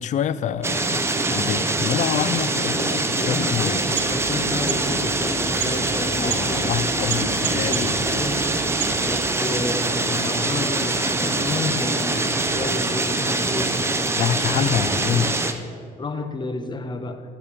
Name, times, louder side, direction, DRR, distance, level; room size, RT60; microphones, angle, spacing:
voice 1, 0.0-3.8 6.2-8.0 14.2-15.4, left 9 dB, 45° left, 14 dB, 0.4 m, -26 dB
sound 1, 0.6-15.5, right 2 dB, 15° right, 0.7 m, -24 dB
voice 2, 2.6-6.9 7.1-8.4 9.0-13.8 14.7-14.8 16.0-17.2, left 3 dB, 25° left, 7 dB, 0.9 m, -31 dB
sound 2, 3.6-9.4, right 7 dB, 85° right, 1.4 m, -33 dB
11.0 x 4.9 x 6.8 m, 2.1 s
cardioid pair, 110°, 17 cm